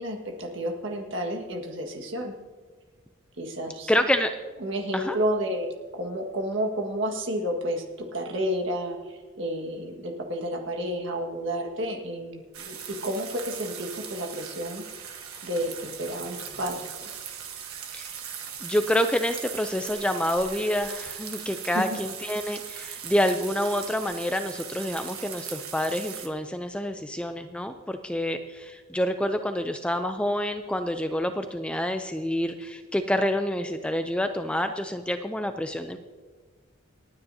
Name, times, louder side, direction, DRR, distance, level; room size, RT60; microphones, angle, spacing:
voice 1, 0.0-2.3 3.4-3.9 4.6-14.8 15.4-17.2 21.6-22.0, equal, 60° right, 2 dB, 1.7 m, -31 dB
voice 2, 3.9-4.3 4.9-5.2 17.9-18.2 18.6-36.0, left 1 dB, 5° left, 7 dB, 0.4 m, -27 dB
sound 1, 12.5-26.3, right 8 dB, 85° right, 1.4 m, -39 dB
28.0 x 9.6 x 2.8 m, 1.4 s
head